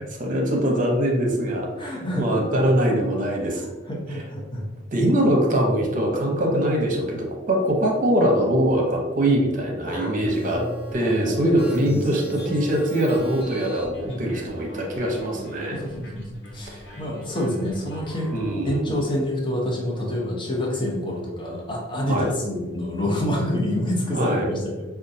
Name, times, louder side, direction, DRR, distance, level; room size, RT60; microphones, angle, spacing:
voice 1, 0.2-3.6 4.9-10.6 10.9-15.8 18.3-19.0 22.1-22.3 24.1-24.5, right 1 dB, 45° right, 0 dB, 0.7 m, -22 dB
voice 2, 1.8-2.4 3.5-4.6 9.9-12.6 14.0-14.3 15.7-18.3 18.6-24.9, left 1 dB, 25° left, -2 dB, 0.8 m, -28 dB
sound 1, 10.2-18.5, equal, 75° left, 1.2 m, -43 dB
5.1 x 2.3 x 2.7 m, 1.2 s
head